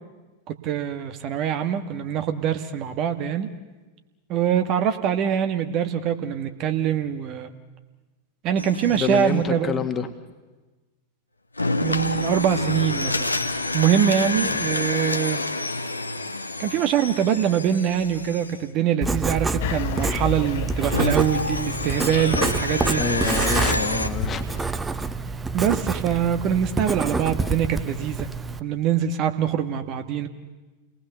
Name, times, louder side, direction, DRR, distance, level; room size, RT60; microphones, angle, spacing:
voice 1, 0.5-3.5 4.3-7.5 8.4-9.7 11.8-13.3 13.7-15.4 16.6-23.0 25.5-28.3 28.6-30.3, right 9 dB, 40° right, 7 dB, 1.5 m, -24 dB
sound 1, 8.6-9.4 11.6-18.6 20.5-24.1, left 2 dB, 80° left, 1.2 m, -28 dB
voice 2, 8.7-10.1 14.3-14.7 23.0-24.5, left 5 dB, 20° left, 8 dB, 1.8 m, -28 dB
Writing, 19.0-28.6, right 3 dB, 10° right, 0.9 m, -27 dB
sound 2, 19.6-24.6, left 9 dB, 55° left, 1.1 m, -35 dB
29.5 x 19.0 x 6.9 m, 1.2 s
figure-of-eight pair, 90°, 0 cm